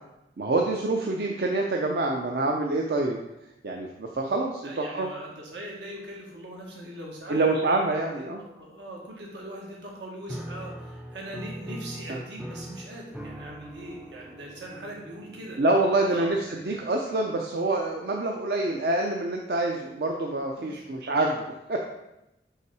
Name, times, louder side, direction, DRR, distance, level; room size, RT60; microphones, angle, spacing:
voice 1, 0.4-3.2 3.6-5.1 7.3-8.4 12.1-12.2 15.6-21.8, right 2 dB, 60° right, 1 dB, 0.5 m, -26 dB
voice 2, 4.6-15.6 16.1-16.3 20.6-20.8, right 1 dB, 85° right, -2 dB, 1.6 m, -41 dB
Piano, 10.3-17.1, right 1 dB, 5° right, 0.4 m, -42 dB
5.6 x 4.0 x 4.7 m, 0.92 s
head